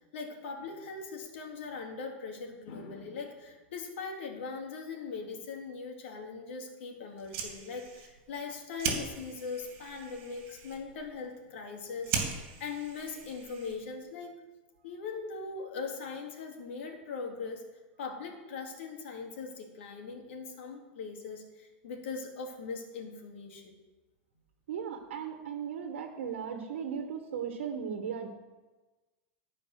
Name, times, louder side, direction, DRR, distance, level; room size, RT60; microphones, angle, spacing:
voice 1, 0.0-14.3 14.8-17.7 18.0-23.8, left 4 dB, 75° left, 2 dB, 2.4 m, -40 dB
Fire, 7.1-14.0, right 6 dB, 45° right, 2.7 m, -39 dB
voice 2, 24.7-28.3, right 7 dB, 85° right, 5 dB, 1.4 m, -37 dB
13.5 x 5.2 x 6.6 m, 1.2 s
supercardioid pair, 140°, 6 cm